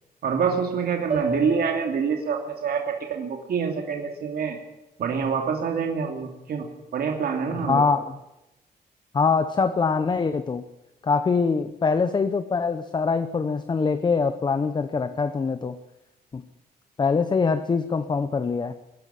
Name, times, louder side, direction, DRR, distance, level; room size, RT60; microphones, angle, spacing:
voice 1, 0.2-4.6 5.0-6.7 6.9-7.8, right 6 dB, 70° right, 2 dB, 2.8 m, -26 dB
sound 1, 1.1-5.4, right 2 dB, 40° right, 5.2 m, -36 dB
voice 2, 7.7-8.0 9.1-10.6 11.0-15.8 16.3-16.4 17.0-18.7, left 5 dB, 25° left, 11 dB, 0.8 m, -23 dB
22.5 x 12.5 x 9.8 m, 0.94 s
wide cardioid pair, 170°, 16 cm